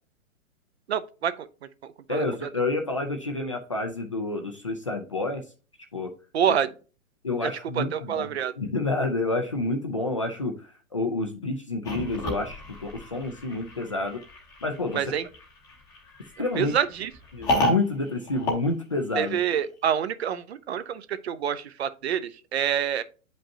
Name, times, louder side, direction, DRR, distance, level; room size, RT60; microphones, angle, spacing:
voice 1, 0.9-1.5 1.8-2.5 6.3-6.7 7.4-8.5 14.9-15.3 16.6-17.1 19.1-23.0, right 9 dB, 50° right, 0.6 m, -27 dB
voice 2, 2.1-5.4 5.9-6.1 7.2-14.2 14.6-15.0 16.4-16.7 17.3-19.4, left 2 dB, 25° left, 0.4 m, -29 dB
sound 1, 11.8-19.5, left 1 dB, 10° left, 0.8 m, -32 dB
8.7 x 5.2 x 2.7 m
hypercardioid pair, 170°, 41 cm